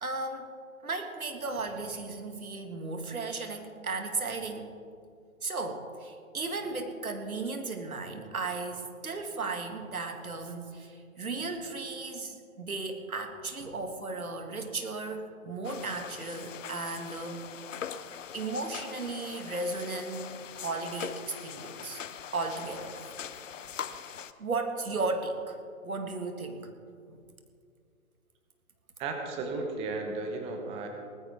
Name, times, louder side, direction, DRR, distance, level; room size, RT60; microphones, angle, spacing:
voice 1, 0.0-0.5 0.8-4.7 5.4-17.5 18.3-22.0 22.3-23.0 24.4-26.7 27.1-27.2, right 3 dB, 85° right, 5 dB, 2.0 m, -35 dB
sound 1, 15.6-24.3, left 8 dB, 65° left, 0.8 m, -42 dB
voice 2, 29.0-30.9, right 3 dB, 15° right, 3 dB, 1.1 m, -34 dB
19.0 x 14.0 x 3.6 m, 2.3 s
figure-of-eight pair, 140°, 42 cm